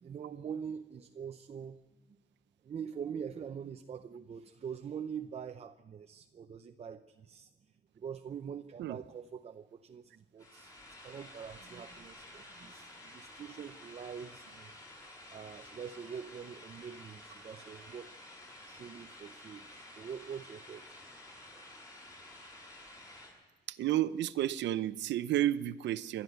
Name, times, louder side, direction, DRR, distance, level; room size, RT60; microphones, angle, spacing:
voice 1, 0.0-1.8 2.6-10.7 11.0-14.8 15.3-18.2 18.7-20.9 21.5-21.6 21.9-22.0, right 7 dB, 35° right, 0.7 m, -44 dB
sound 1, 10.4-23.3, left 1 dB, 20° left, 7.0 m, -52 dB
voice 2, 23.7-26.2, right 13 dB, 85° right, 0.8 m, -31 dB
27.5 x 12.0 x 8.0 m
cardioid pair, 145°, 18 cm